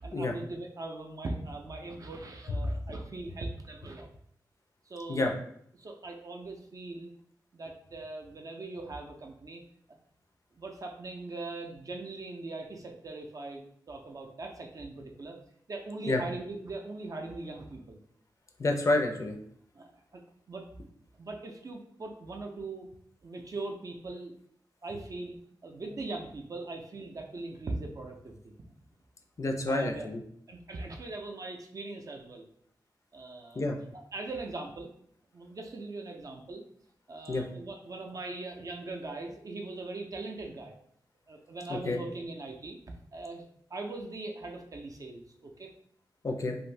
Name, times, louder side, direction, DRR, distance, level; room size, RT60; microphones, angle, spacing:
voice 1, 0.0-4.1 4.9-5.3 5.8-7.1 7.5-9.6 10.5-13.6 13.9-15.4 15.7-18.0 19.7-20.2 20.5-20.7 21.2-22.9 23.2-24.3 24.8-28.5 29.7-30.1 30.5-32.5 33.1-33.6 33.9-34.9 35.3-36.6 37.1-40.7 41.3-42.8 43.1-43.4 43.7-45.7, right 2 dB, 50° right, 3 dB, 0.4 m, -40 dB
voice 2, 18.6-19.4 29.4-30.2 33.6-33.8 37.3-37.4 41.7-42.0 46.2-46.6, left 2 dB, 40° left, 3 dB, 0.4 m, -29 dB
2.6 x 2.5 x 3.1 m, 0.68 s
wide cardioid pair, 110°, 8 cm